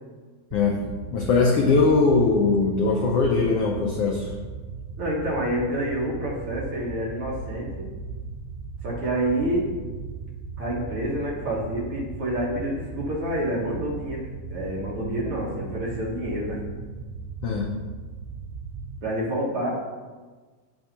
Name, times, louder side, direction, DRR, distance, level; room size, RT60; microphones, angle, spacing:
voice 1, 0.5-4.3 17.4-17.8, left 4 dB, 80° left, 0 dB, 1.3 m, -21 dB
sound 1, 0.5-19.0, right 4 dB, 75° right, 1.7 m, -37 dB
voice 2, 5.0-7.9 8.8-9.7 10.6-16.6 19.0-19.7, right 1 dB, 55° right, -4 dB, 1.8 m, -28 dB
8.7 x 3.5 x 6.6 m, 1.4 s
omnidirectional pair, 3.5 m